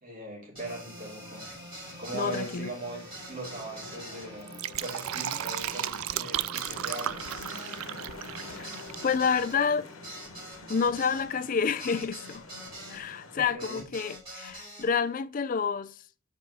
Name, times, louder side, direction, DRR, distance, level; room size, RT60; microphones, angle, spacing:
voice 1, 0.0-1.4 2.0-4.5 4.8-7.2 13.3-13.8, right 2 dB, 40° right, 2.9 m, -40 dB
sound 1, 0.5-13.0 13.6-14.9, right 1 dB, 25° right, 3.0 m, -45 dB
sound 2, 0.7-13.5, left 3 dB, 85° left, 1.1 m, -47 dB
voice 2, 2.1-2.7 8.5-8.7 9.0-9.9 10.7-12.4 12.9-16.0, left 6 dB, 40° left, 0.4 m, -28 dB
Fill (with liquid), 4.3-9.1 9.4-9.5, right 12 dB, 85° right, 0.3 m, -34 dB
4.8 x 4.7 x 5.5 m
head